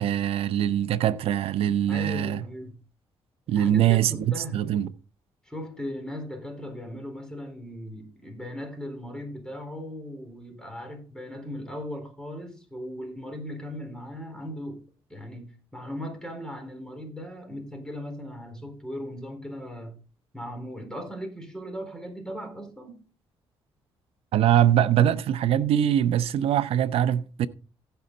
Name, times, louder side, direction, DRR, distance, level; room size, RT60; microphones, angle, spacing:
voice 1, 0.0-2.4 3.5-4.9 24.3-27.5, right 10 dB, 75° right, 0.7 m, -23 dB
voice 2, 1.9-2.8 3.5-4.6 5.4-14.8 15.1-19.9 20.3-23.0, equal, 5° left, 4.2 m, -38 dB
15.5 x 5.7 x 3.9 m
cardioid pair, 85°, 10 cm